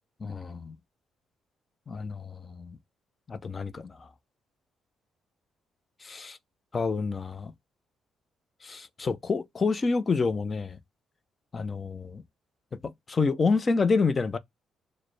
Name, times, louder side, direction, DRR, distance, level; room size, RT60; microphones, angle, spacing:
voice 1, 0.2-0.8 1.9-2.8 3.3-4.0 6.0-6.4 6.7-7.5 8.6-10.8 11.5-12.2 12.8-14.4, left 4 dB, 35° left, 0.6 m, -28 dB
6.3 x 2.2 x 3.1 m
cardioid pair, 90°, 0 cm